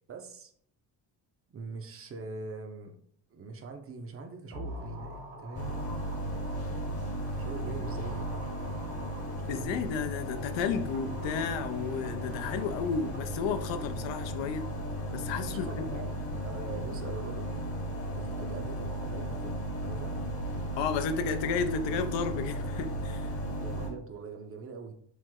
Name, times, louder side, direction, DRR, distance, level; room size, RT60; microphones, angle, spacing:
voice 1, 0.1-0.5 1.5-3.0 3.3-5.8 7.4-8.7 9.5-9.7 15.5-16.1 16.4-17.5 18.2-20.2 23.6-24.9, right 4 dB, 30° right, 0.6 m, -43 dB
sound 1, 4.5-10.0 10.6-13.8 14.1-14.2, equal, 70° right, 1.4 m, -47 dB
sound 2, 5.6-23.9, equal, 30° left, 0.9 m, -35 dB
voice 2, 9.5-14.7 15.1-15.8 20.8-23.4, left 6 dB, 80° left, 0.5 m, -32 dB
3.2 x 2.0 x 3.5 m
cardioid pair, 85°, 44 cm